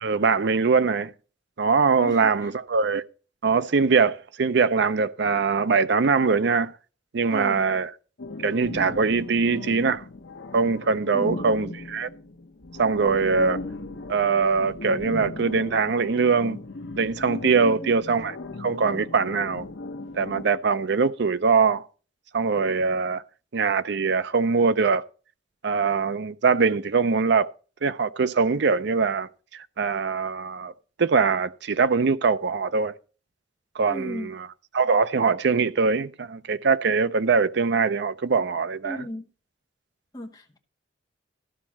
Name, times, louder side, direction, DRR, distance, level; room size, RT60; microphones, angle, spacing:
voice 1, 0.0-1.1 1.6-3.0 3.4-6.7 7.1-7.9 8.4-10.0 10.5-12.1 12.8-13.6 14.1-16.6 17.0-19.7 20.1-21.8 22.3-23.2 23.5-25.0 25.6-27.5 27.8-30.7 31.0-32.9 33.8-34.5 34.7-39.0, right 5 dB, 65° right, 0.5 m, -22 dB
voice 2, 2.0-2.3 7.3-7.6 11.1-11.5 17.6-18.0 33.9-34.3 38.8-39.3 40.1-40.6, equal, 20° left, 1.0 m, -35 dB
sound 1, 8.2-20.5, left 2 dB, 70° left, 0.9 m, -37 dB
12.5 x 4.4 x 7.2 m
head